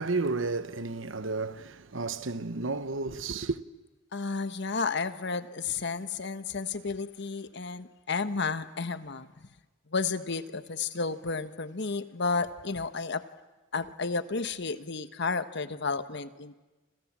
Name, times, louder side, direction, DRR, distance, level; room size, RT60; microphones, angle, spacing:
voice 1, 0.0-3.6, right 3 dB, 70° right, 1.1 m, -32 dB
voice 2, 4.1-9.5 9.9-13.2 13.7-16.5, left 4 dB, 60° left, 1.2 m, -32 dB
29.5 x 27.5 x 7.4 m
head